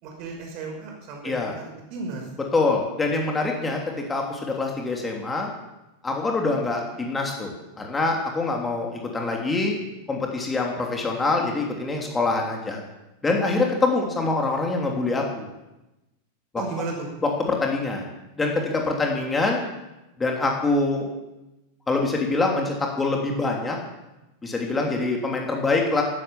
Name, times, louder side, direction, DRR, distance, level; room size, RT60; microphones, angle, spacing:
voice 1, 0.0-2.2 16.6-17.1, right 4 dB, 40° right, 1 dB, 5.7 m, -34 dB
voice 2, 2.5-3.8 4.1-5.5 6.0-9.7 10.1-12.8 13.2-15.5 16.5-16.8 17.2-18.1 18.4-19.6 20.2-21.1 21.9-23.8 24.4-26.0, left 3 dB, 15° left, 0 dB, 3.2 m, -25 dB
15.0 x 12.0 x 7.3 m, 0.99 s
figure-of-eight pair, 90°, 0 cm